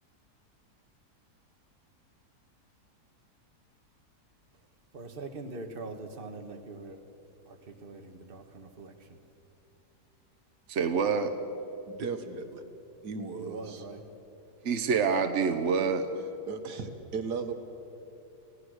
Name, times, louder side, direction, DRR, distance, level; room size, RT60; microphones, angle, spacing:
voice 1, 4.9-7.0 7.5-7.6 7.8-8.9 13.3-14.0, right 3 dB, 35° right, 4 dB, 1.6 m, -42 dB
voice 2, 10.7-11.3 14.6-16.1, right 5 dB, 50° right, 7 dB, 1.1 m, -26 dB
voice 3, 11.9-12.6 13.0-13.9 16.5-17.5, right 5 dB, 80° right, 7 dB, 1.9 m, -36 dB
30.0 x 16.5 x 6.5 m, 2.9 s
omnidirectional pair, 1.7 m